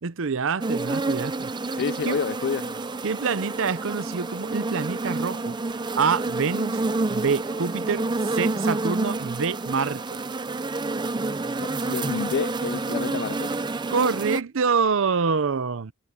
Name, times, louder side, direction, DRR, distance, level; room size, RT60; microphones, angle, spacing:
voice 1, 0.0-1.5 2.0-2.2 3.0-5.6 6.0-6.8 7.1-10.2 13.9-15.9, right 5 dB, 65° right, 0.6 m, -26 dB
sound 1, 0.6-14.4, right 3 dB, 20° right, 0.5 m, -29 dB
voice 2, 1.7-2.7 11.6-13.5, left 6 dB, 55° left, 0.4 m, -29 dB
sound 2, 1.7-11.0, equal, ahead, 2.9 m, -59 dB
head